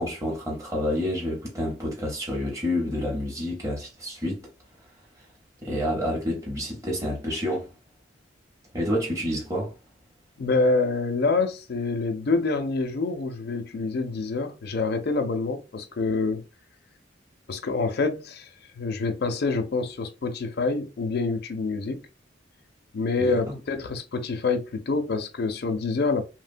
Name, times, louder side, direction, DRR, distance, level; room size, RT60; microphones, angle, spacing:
voice 1, 0.0-4.4 5.6-7.7 8.7-9.7 23.2-23.5, left 1 dB, 15° right, 0.8 m, -28 dB
voice 2, 10.4-16.4 17.5-18.5 18.8-22.0 22.9-26.2, left 3 dB, 50° left, 0.4 m, -26 dB
3.0 x 2.1 x 2.5 m
head